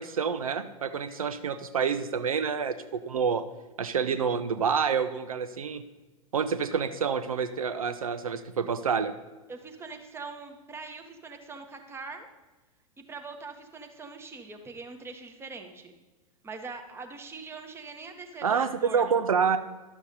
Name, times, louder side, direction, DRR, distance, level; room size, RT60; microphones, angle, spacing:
voice 1, 0.0-3.4 3.8-5.8 6.3-9.1 18.4-19.6, right 6 dB, 75° right, 11 dB, 0.5 m, -28 dB
voice 2, 9.5-12.3 13.0-15.9 16.4-19.2, right 4 dB, 15° right, 5 dB, 1.1 m, -42 dB
12.0 x 7.1 x 4.0 m, 1.2 s
figure-of-eight pair, 95°, 18 cm